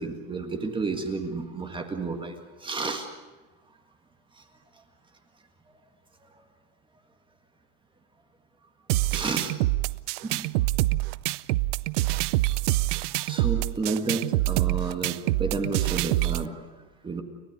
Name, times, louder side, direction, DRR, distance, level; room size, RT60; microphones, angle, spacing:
voice 1, 0.0-2.4 2.6-3.1 9.1-9.5 10.2-10.5 13.2-16.5 17.0-17.2, right 4 dB, 10° right, 5 dB, 1.8 m, -31 dB
sound 1, 8.9-16.5, right 19 dB, 60° right, 0.6 m, -26 dB
30.0 x 13.0 x 9.3 m, 1.3 s
supercardioid pair, 150°, 42 cm